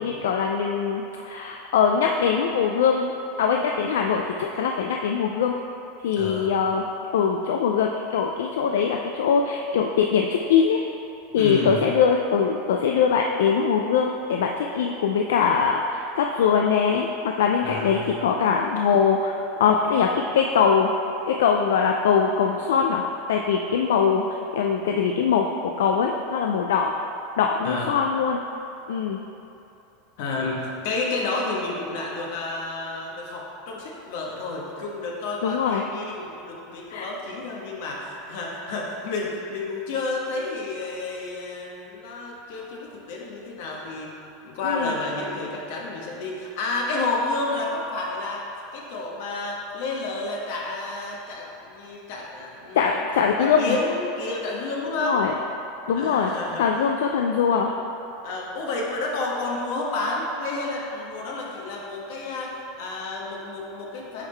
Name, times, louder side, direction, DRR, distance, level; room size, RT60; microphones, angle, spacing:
voice 1, 0.0-3.1 3.4-5.6 6.0-6.8 7.1-10.8 11.3-19.3 19.6-20.9 21.3-23.0 23.3-24.2 24.5-26.9 27.4-28.4 28.9-29.2 35.4-35.8 36.9-37.1 44.6-44.9 52.8-53.8 55.0-55.3 55.9-56.3 56.6-57.7, left 6 dB, 85° left, 2 dB, 0.3 m, -22 dB
voice 2, 6.1-6.6 11.4-11.8 17.6-18.1 27.6-27.9 30.2-44.1 44.4-48.4 48.7-53.0 53.4-55.2 55.9-56.6 58.2-64.3, left 3 dB, 65° left, -2 dB, 1.2 m, -30 dB
9.0 x 3.6 x 3.3 m, 2.9 s
supercardioid pair, 130°, 0 cm